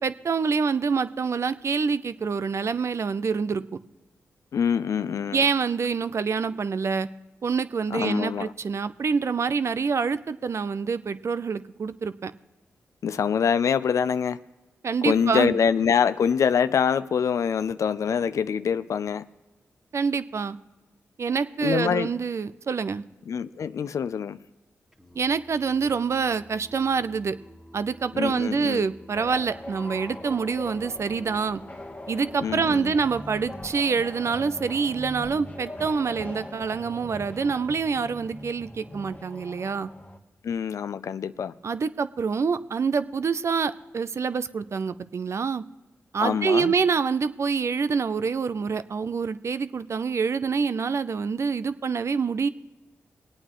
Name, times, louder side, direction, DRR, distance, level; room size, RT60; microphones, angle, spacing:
voice 1, 0.0-3.6 5.3-7.1 7.4-12.3 14.8-15.6 19.9-20.6 21.2-23.0 25.2-27.4 27.7-31.6 32.1-39.9 41.6-45.6 46.1-52.5, right 5 dB, 55° right, 14 dB, 0.5 m, -26 dB
voice 2, 4.5-5.5 7.9-8.5 13.0-14.4 15.0-19.2 21.6-22.1 23.3-24.4 28.1-28.9 32.4-32.9 40.4-41.5 46.2-46.7, left 7 dB, 70° left, 14 dB, 0.4 m, -25 dB
Singing, 24.9-32.8, equal, 5° right, 2.0 m, -51 dB
sound 1, 29.1-40.2, left 1 dB, 25° left, 1.2 m, -41 dB
22.5 x 8.8 x 3.1 m, 1.1 s
supercardioid pair, 40°, 6 cm